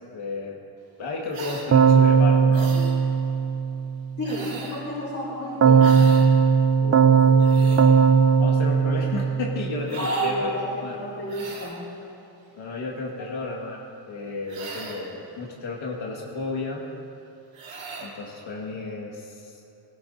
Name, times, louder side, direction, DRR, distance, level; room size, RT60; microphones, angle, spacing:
voice 1, 0.1-0.6 1.0-2.8 6.8-7.8 8.4-10.6 10.8-11.0 12.6-16.8 18.0-19.6, left 3 dB, 85° left, -2 dB, 1.9 m, -33 dB
sound 1, 1.3-1.7 2.5-3.0 4.2-4.8 5.8-6.3 7.2-7.9 9.9-10.4 11.3-11.8 14.5-15.1 17.5-18.1, right 3 dB, 80° right, 3.1 m, -38 dB
Keyboard (musical), 1.7-4.0 5.6-9.9, right 6 dB, 35° right, 0.7 m, -18 dB
voice 2, 4.2-6.0 10.0-11.8, equal, 30° left, -11 dB, 3.5 m, -30 dB
16.5 x 16.5 x 2.7 m, 3.0 s
cardioid pair, 115°, 47 cm